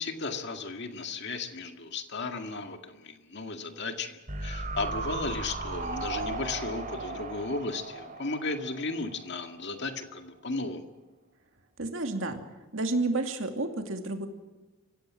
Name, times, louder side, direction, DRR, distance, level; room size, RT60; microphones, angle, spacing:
voice 1, 0.0-10.8, left 3 dB, 55° left, 6 dB, 2.0 m, -35 dB
sound 1, 4.3-9.5 9.8-9.9, right 3 dB, 35° right, 3.5 m, -36 dB
voice 2, 11.8-12.4 12.7-14.3, right 2 dB, 65° right, 5 dB, 2.5 m, -30 dB
25.5 x 15.5 x 7.6 m, 1.2 s
head